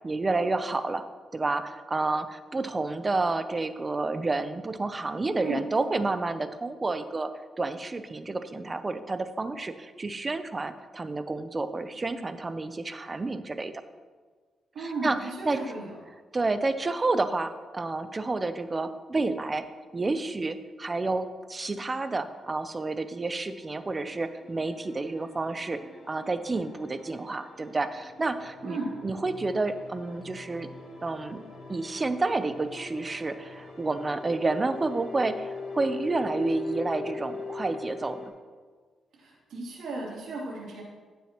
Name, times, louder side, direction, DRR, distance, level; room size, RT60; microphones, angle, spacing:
voice 1, 0.0-1.0 1.3-7.3 7.6-13.7 14.8-15.2 15.4-15.6 16.3-19.7 19.9-25.8 26.1-28.8 29.0-30.7 31.0-31.4 31.7-38.2, right 3 dB, 25° right, 11 dB, 0.6 m, -30 dB
voice 2, 14.7-15.9 28.6-28.9 39.1-40.8, right 2 dB, 80° right, -4 dB, 3.1 m, -34 dB
sound 1, 22.3-38.3, left 4 dB, 70° left, 3.3 m, -42 dB
15.0 x 7.2 x 3.0 m, 1.5 s
cardioid pair, 115°, 0 cm